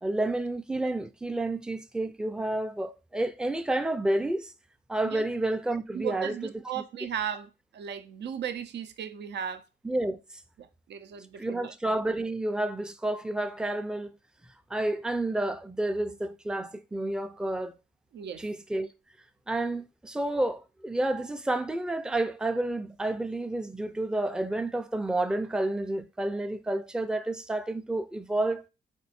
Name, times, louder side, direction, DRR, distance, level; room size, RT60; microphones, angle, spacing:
voice 1, 0.0-4.5 4.9-6.3 9.8-10.2 11.4-14.1 14.7-17.7 18.4-18.9 19.5-28.6, right 1 dB, 5° right, 0.4 m, -30 dB
voice 2, 5.9-9.6 10.6-11.7 18.1-18.4, right 8 dB, 75° right, 0.6 m, -36 dB
4.4 x 2.5 x 4.2 m
cardioid pair, 80°, 18 cm